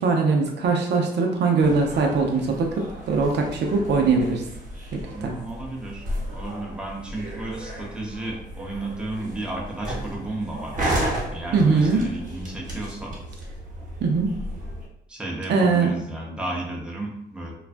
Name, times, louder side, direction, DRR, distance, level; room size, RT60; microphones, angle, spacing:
voice 1, 0.0-2.7 3.1-4.4 4.9-5.3 11.5-12.1 14.0-14.3 15.5-15.9, right 4 dB, 60° right, 1 dB, 0.5 m, -21 dB
sound 1, 1.6-14.9, right 1 dB, 40° right, 0.9 m, -34 dB
voice 2, 5.1-6.0 6.3-10.8 11.3-13.2 15.1-17.5, right 2 dB, 5° right, -2 dB, 0.5 m, -33 dB
2.3 x 2.2 x 2.5 m, 0.76 s
cardioid pair, 90°, 20 cm